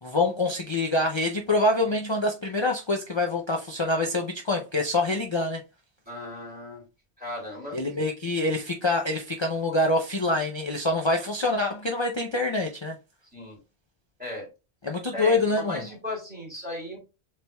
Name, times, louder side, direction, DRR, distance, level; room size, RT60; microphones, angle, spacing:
voice 1, 0.0-5.6 7.7-13.0 14.8-15.9, left 2 dB, 35° left, 0.5 m, -25 dB
voice 2, 6.1-6.8 7.2-7.8 13.3-13.6 14.2-14.5 15.1-17.0, left 1 dB, 10° right, 2.5 m, -36 dB
6.9 x 3.3 x 2.2 m
omnidirectional pair, 1.1 m